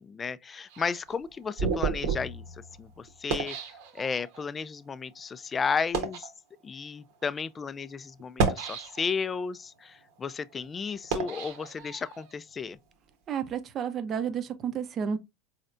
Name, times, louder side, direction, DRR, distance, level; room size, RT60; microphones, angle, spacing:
voice 1, 0.0-2.4 2.8-3.6 3.9-6.3 6.6-12.8, left 5 dB, 25° left, 0.3 m, -33 dB
sound 1, 0.7-4.4 5.1-5.2 5.8-6.3 7.1-7.2 8.2-9.3 9.8-12.3, right 5 dB, 70° right, 1.0 m, -32 dB
voice 2, 13.3-15.2, right 7 dB, 40° right, 0.6 m, -31 dB
4.2 x 3.2 x 2.5 m
hypercardioid pair, 100°, 0 cm